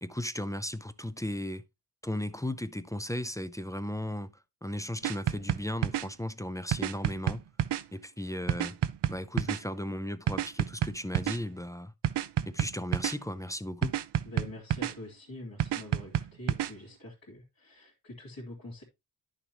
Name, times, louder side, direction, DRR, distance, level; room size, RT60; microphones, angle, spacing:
voice 1, 0.0-1.6 2.0-4.3 4.6-7.5 7.9-8.8 9.1-11.9 12.5-14.0, left 1 dB, 10° left, 0.5 m, -35 dB
sound 1, 5.0-6.1 6.7-7.8 8.5-9.6 10.3-11.4 12.0-13.2 13.8-14.9 15.6-16.7, right 11 dB, 75° right, 0.5 m, -29 dB
voice 2, 14.2-18.8, left 1 dB, 55° left, 2.5 m, -45 dB
10.5 x 6.6 x 2.9 m
wide cardioid pair, 135°, 42 cm